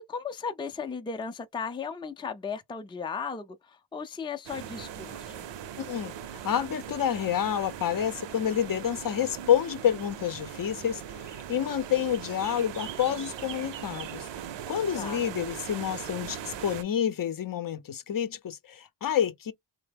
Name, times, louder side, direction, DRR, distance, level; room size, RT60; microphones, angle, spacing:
voice 1, 0.0-5.4 14.9-15.2, left 5 dB, 10° left, 0.5 m, -36 dB
sound 1, 4.5-16.8, right 9 dB, 70° right, 0.7 m, -40 dB
voice 2, 5.8-6.1 6.4-14.3 14.7-19.5, left 9 dB, 45° left, 0.7 m, -28 dB
3.2 x 2.1 x 3.3 m
cardioid pair, 80°, 46 cm